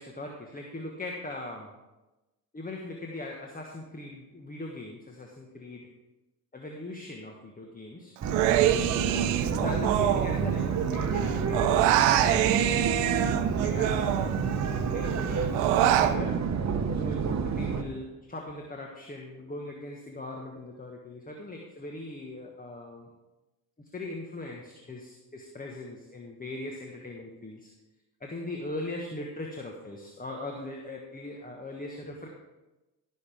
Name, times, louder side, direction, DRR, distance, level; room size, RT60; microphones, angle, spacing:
voice 1, 0.0-1.7 2.5-5.9 6.5-8.1 9.4-12.9 13.5-16.4 16.9-23.1 23.9-27.7 28.2-32.3, left 2 dB, 20° left, 1 dB, 1.5 m, -40 dB
sound 1, 8.2-17.8, right 6 dB, 40° right, 1.0 m, -29 dB
Human voice, 8.3-10.9 11.2-14.7 15.0-16.1, right 12 dB, 75° right, 0.7 m, -26 dB
13.5 x 6.7 x 3.6 m, 1.0 s
hypercardioid pair, 65°, 43 cm